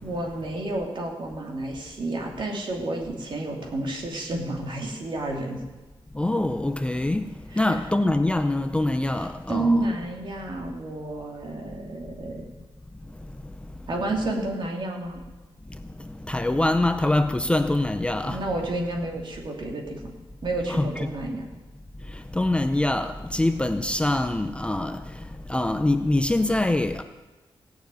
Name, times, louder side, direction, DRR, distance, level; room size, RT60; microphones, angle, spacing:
voice 1, 0.0-5.6 7.5-7.7 9.2-12.5 13.9-15.2 18.3-20.1 20.4-21.5, right 2 dB, 55° right, 2.8 m, -30 dB
voice 2, 6.1-7.3 7.6-9.9 16.2-18.5 20.7-21.1 22.3-25.0 25.5-27.0, left 1 dB, 10° left, 0.5 m, -24 dB
16.5 x 7.0 x 9.1 m
wide cardioid pair, 165°, 10 cm